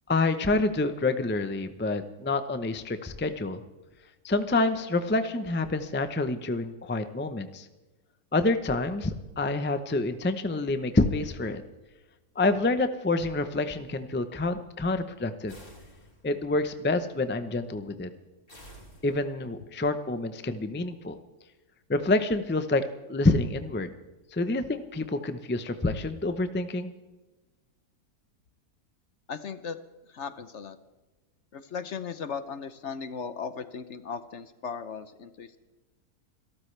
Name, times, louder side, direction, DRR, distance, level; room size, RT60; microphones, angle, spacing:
voice 1, 0.1-3.6 4.2-7.7 8.3-11.6 12.4-15.5 16.2-18.1 19.0-21.2 21.9-22.8 23.1-23.9 24.3-26.9, left 2 dB, 10° left, 9 dB, 0.5 m, -27 dB
sound 1, 15.5-16.5 18.5-19.6, equal, 35° left, 4.0 m, -51 dB
voice 2, 29.3-29.8 30.1-30.8 31.5-35.6, left 6 dB, 55° left, 11 dB, 1.0 m, -37 dB
27.5 x 13.5 x 3.3 m, 1.2 s
omnidirectional pair, 1.6 m